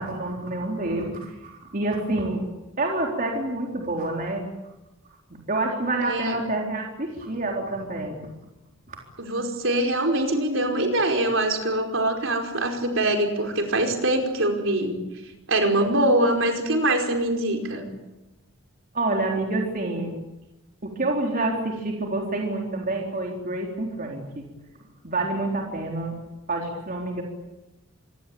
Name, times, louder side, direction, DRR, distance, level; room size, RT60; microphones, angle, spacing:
voice 1, 0.0-2.4 2.8-4.5 5.5-8.3 8.9-9.0 18.9-20.1 20.8-24.5 25.0-26.2 26.5-27.2, right 2 dB, 40° right, 0 dB, 4.0 m, -27 dB
voice 2, 9.2-15.0 15.5-17.8, right 1 dB, 65° right, 3 dB, 5.1 m, -23 dB
26.5 x 23.0 x 8.7 m, 0.99 s
head